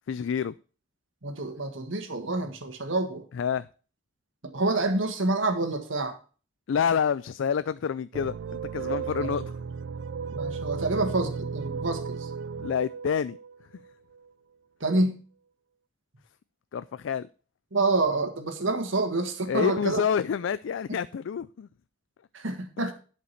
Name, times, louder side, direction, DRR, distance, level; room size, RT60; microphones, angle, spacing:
voice 1, 0.1-0.5 3.3-3.7 6.7-9.5 12.6-13.4 16.7-17.3 19.5-21.7, left 7 dB, 75° left, 0.4 m, -28 dB
voice 2, 1.2-3.2 4.5-6.2 10.3-12.3 14.8-15.2 17.7-20.0 22.3-22.9, right 2 dB, 85° right, 1.7 m, -27 dB
sound 1, 8.1-14.3, right 6 dB, 70° right, 0.4 m, -34 dB
11.5 x 5.2 x 5.8 m
head